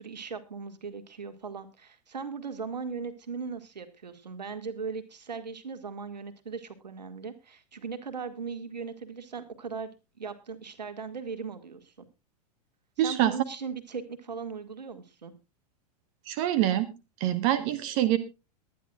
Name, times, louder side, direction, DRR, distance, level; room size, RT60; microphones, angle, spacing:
voice 1, 0.0-9.9 10.2-12.1 13.0-15.3, right 5 dB, 80° right, 10 dB, 2.1 m, -38 dB
voice 2, 13.0-13.3 16.3-16.9 17.2-18.2, right 12 dB, 50° right, 12 dB, 1.2 m, -25 dB
22.5 x 10.5 x 2.4 m, 0.27 s
hypercardioid pair, 100°, 21 cm